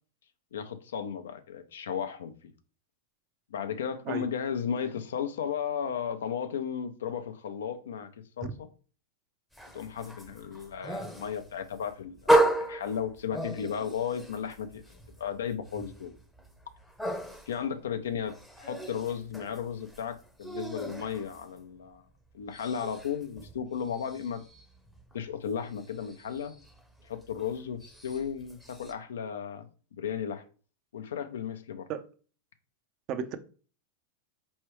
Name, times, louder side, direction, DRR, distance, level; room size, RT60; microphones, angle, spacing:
voice 1, 0.5-2.3 3.5-8.1 8.4-8.7 9.7-14.8 15.2-16.1 17.5-22.0 22.3-24.4 25.1-26.5 27.0-29.7 30.0-30.4 30.9-31.9, left 7 dB, 80° left, 0.5 m, -34 dB
voice 2, 4.1-4.3 8.4-8.5 31.9-32.0 33.1-33.4, right 7 dB, 45° right, 0.5 m, -33 dB
sound 1, 9.5-22.0 22.3-28.9, right 1 dB, ahead, 0.7 m, -34 dB
4.5 x 3.2 x 3.1 m
hypercardioid pair, 105°, 0 cm